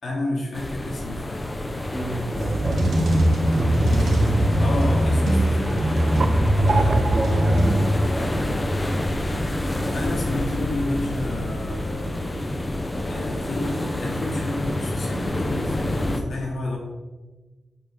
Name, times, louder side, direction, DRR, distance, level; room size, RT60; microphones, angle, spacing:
voice 1, 0.0-1.5 4.6-7.0 9.9-12.1 13.1-16.8, left 2 dB, 60° left, -3 dB, 3.5 m, -30 dB
sound 1, 0.5-16.2, left 1 dB, 20° left, 1.1 m, -28 dB
voice 2, 1.6-2.9 3.5-4.0 6.6-8.4, equal, 10° right, -3 dB, 3.0 m, -29 dB
sound 2, 2.3-8.3, right 1 dB, 80° right, 2.7 m, -21 dB
sound 3, 5.6-8.9, right 4 dB, 50° right, 0.5 m, -31 dB
8.9 x 6.0 x 7.3 m, 1.3 s
wide cardioid pair, 135°, 0 cm